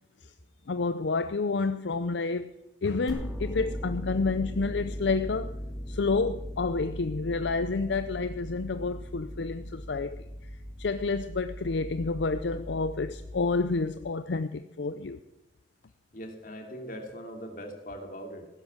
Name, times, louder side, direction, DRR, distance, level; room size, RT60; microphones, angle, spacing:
voice 1, 0.7-2.5 2.8-5.5 5.9-10.5 10.8-15.2, left 4 dB, 70° left, 11 dB, 0.5 m, -29 dB
sound 1, 3.1-14.0, equal, ahead, 2.6 m, -39 dB
voice 2, 16.1-18.5, equal, 45° left, 3 dB, 2.9 m, -41 dB
16.0 x 11.5 x 7.2 m, 0.95 s
head